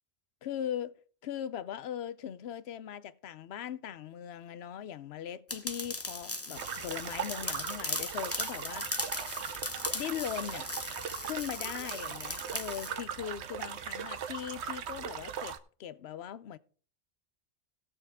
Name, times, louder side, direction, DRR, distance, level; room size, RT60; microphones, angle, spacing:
voice 1, 0.4-1.0 1.2-8.9 9.9-10.7 11.2-16.6, left 10 dB, 65° left, 0.8 m, -39 dB
sound 1, 5.5-12.9, left 2 dB, 15° left, 0.7 m, -38 dB
sound 2, 6.5-15.6, right 8 dB, 65° right, 1.0 m, -39 dB
17.5 x 6.8 x 3.5 m
omnidirectional pair, 1.3 m